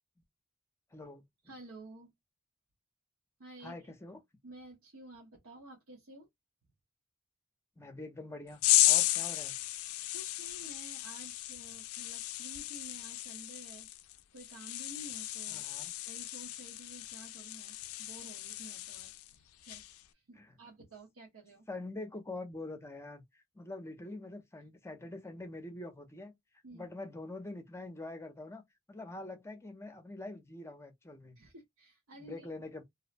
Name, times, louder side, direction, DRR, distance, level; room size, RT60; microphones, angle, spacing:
voice 1, 0.9-1.2 3.6-4.2 7.8-9.6 15.5-15.9 20.3-20.5 21.7-26.3 26.7-28.6 28.9-31.4 32.2-32.8, left 2 dB, 15° left, 0.6 m, -45 dB
voice 2, 1.4-2.1 3.4-3.9 4.4-6.3 10.1-15.6 16.0-19.9 20.1-21.6 26.6-26.9 31.4-32.5, right 1 dB, 85° right, 0.9 m, -52 dB
sound 1, 8.6-19.3 19.6-20.0, left 16 dB, 85° left, 0.4 m, -34 dB
2.7 x 2.0 x 2.5 m
head